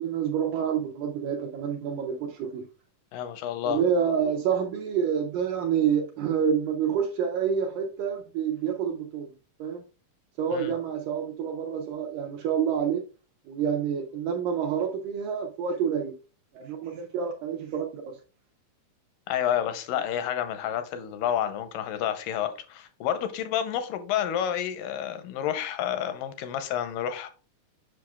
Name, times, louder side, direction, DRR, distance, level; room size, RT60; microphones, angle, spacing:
voice 1, 0.0-2.7 3.7-9.3 9.6-9.8 10.4-13.0 13.5-16.1 16.5-18.2, right 7 dB, 75° right, 2.1 m, -28 dB
voice 2, 3.1-3.8 10.5-10.7 19.3-27.3, left 10 dB, 80° left, 2.1 m, -29 dB
7.7 x 6.1 x 2.3 m
omnidirectional pair, 4.3 m